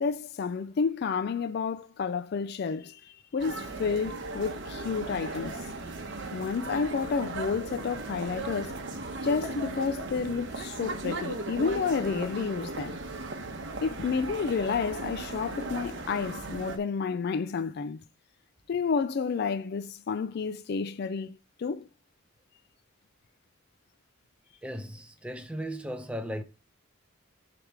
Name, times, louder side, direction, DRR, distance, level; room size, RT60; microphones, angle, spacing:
voice 1, 0.0-5.7 6.3-8.8 9.2-13.0 13.8-18.0 18.7-21.9, left 5 dB, 50° left, 0.3 m, -30 dB
sound 1, 3.4-16.8, right 2 dB, 55° right, 1.0 m, -37 dB
voice 2, 24.6-26.4, equal, 5° right, 0.6 m, -36 dB
7.2 x 3.4 x 4.7 m
head